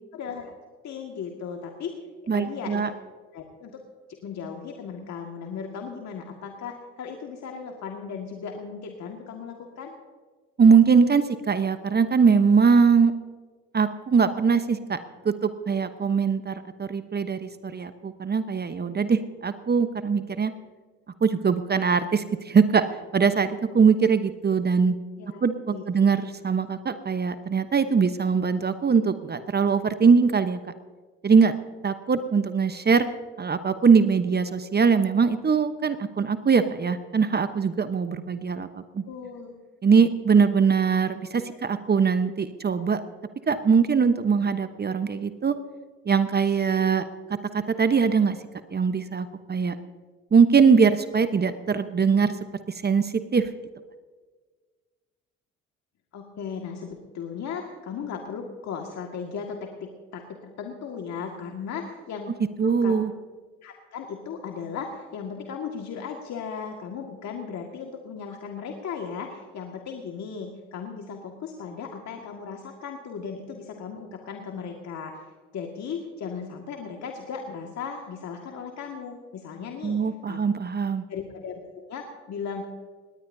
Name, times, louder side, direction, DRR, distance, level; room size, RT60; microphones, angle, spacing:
voice 1, 0.1-0.5 0.8-2.0 2.3-2.9 3.3-3.8 4.1-9.9 25.2-25.4 25.7-25.8 39.1-39.5 41.5-41.6 56.1-62.9 63.6-75.3 75.5-80.4 81.1-82.7, left 6 dB, 55° left, 2 dB, 1.9 m, -36 dB
voice 2, 2.3-2.9 10.6-13.1 13.7-15.0 15.2-20.5 21.2-22.8 23.1-25.0 25.4-30.6 31.2-31.5 31.8-33.1 33.4-39.0 39.8-43.0 43.5-45.6 46.0-47.0 47.5-48.4 48.7-49.8 50.3-52.3 52.7-53.5 62.6-63.1 79.8-81.0, right 5 dB, 30° right, 10 dB, 1.0 m, -21 dB
19.0 x 18.5 x 2.7 m, 1.4 s
hypercardioid pair, 60°, 32 cm